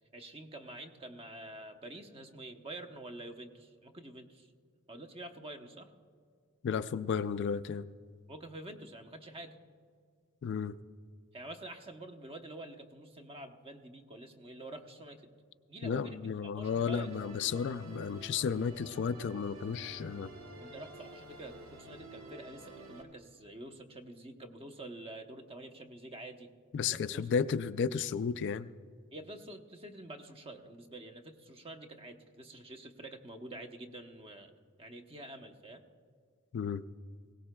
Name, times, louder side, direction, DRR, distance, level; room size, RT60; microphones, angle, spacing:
voice 1, 0.1-4.5 4.9-5.9 8.3-9.6 11.3-15.3 15.7-17.1 20.6-26.5 26.9-27.3 29.1-34.5 34.8-35.8, right 1 dB, 25° right, 5 dB, 0.8 m, -47 dB
voice 2, 6.6-7.9 10.4-10.8 15.8-20.3 26.7-28.7 36.5-36.8, left 6 dB, 50° left, 13 dB, 0.3 m, -33 dB
Musical instrument, 16.6-23.0, right 1 dB, 80° right, 1.6 m, -50 dB
20.5 x 17.5 x 2.2 m, 2.1 s
head